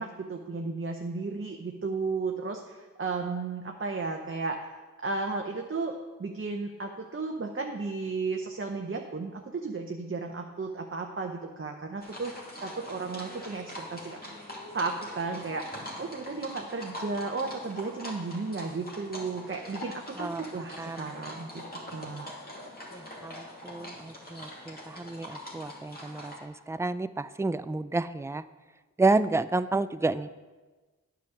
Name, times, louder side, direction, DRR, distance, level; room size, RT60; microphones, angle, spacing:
voice 1, 0.0-4.6 5.0-12.3 12.6-14.2 14.7-15.6 16.0-21.6 21.9-22.3, right 4 dB, 40° right, 2 dB, 0.9 m, -34 dB
sound 1, 12.0-26.4, left 1 dB, 25° left, 2.5 m, -43 dB
voice 2, 20.8-21.1 22.9-28.4 29.0-30.3, right 3 dB, 10° right, 14 dB, 0.3 m, -30 dB
9.3 x 5.1 x 7.1 m, 1.3 s
cardioid pair, 45°, 33 cm